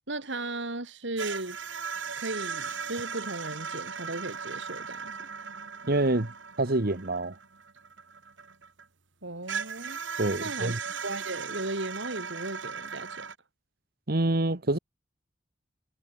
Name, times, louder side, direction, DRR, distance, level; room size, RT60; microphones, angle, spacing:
voice 1, 0.1-1.6 2.2-5.2 9.2-10.0 10.4-13.3, right 2 dB, 70° right, 3.4 m, -36 dB
sound 1, 1.2-8.8 9.5-13.3, right 6 dB, 85° right, 3.1 m, -38 dB
voice 2, 5.9-6.3 6.6-7.3 10.2-10.8 14.1-14.8, right 2 dB, 55° right, 1.5 m, -26 dB
head